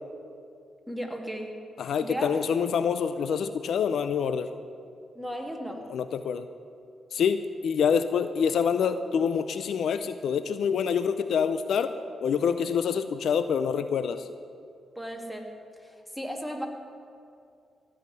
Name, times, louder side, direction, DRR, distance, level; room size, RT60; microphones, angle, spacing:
voice 1, 0.9-1.5 2.0-2.3 5.1-5.9 15.0-15.5 15.8-16.7, equal, 5° left, 2 dB, 2.3 m, -35 dB
voice 2, 1.8-4.5 5.9-6.5 7.1-11.9 12.2-14.3, left 7 dB, 70° left, 11 dB, 0.5 m, -26 dB
16.0 x 5.7 x 9.6 m, 2.4 s
supercardioid pair, 50°, 0 cm